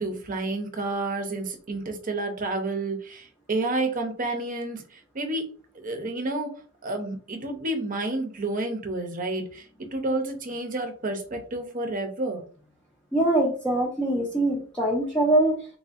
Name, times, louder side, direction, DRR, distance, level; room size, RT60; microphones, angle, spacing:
voice 1, 0.0-6.5 6.8-12.4, right 2 dB, 40° right, 4 dB, 0.7 m, -30 dB
voice 2, 13.1-15.6, right 1 dB, 5° left, -4 dB, 0.5 m, -23 dB
3.7 x 2.6 x 2.4 m, 0.41 s
head